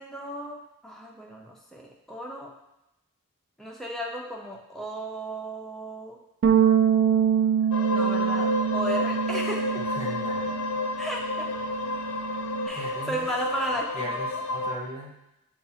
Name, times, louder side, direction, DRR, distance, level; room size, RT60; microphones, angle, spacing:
voice 1, 0.0-2.5 3.6-6.2 7.9-9.8 11.0-11.5 12.6-14.2, equal, ahead, -2 dB, 0.5 m, -35 dB
Bass guitar, 6.4-12.7, right 8 dB, 55° right, 0.4 m, -25 dB
sound 1, 7.7-14.7, left 2 dB, 70° left, 0.5 m, -30 dB
voice 2, 9.9-10.7 11.9-12.1 12.7-13.3 13.9-15.1, left 1 dB, 30° left, -3 dB, 1.0 m, -38 dB
7.0 x 2.3 x 2.8 m, 0.89 s
head